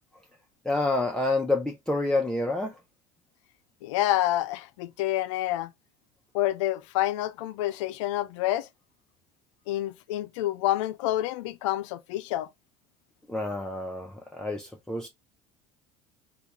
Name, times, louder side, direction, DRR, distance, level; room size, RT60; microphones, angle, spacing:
voice 1, 0.6-2.7 13.3-15.1, left 2 dB, 5° left, 0.6 m, -28 dB
voice 2, 3.8-5.7 6.3-8.7 9.7-12.5, left 14 dB, 80° left, 0.4 m, -28 dB
3.4 x 2.4 x 2.9 m
hypercardioid pair, 80°, 15 cm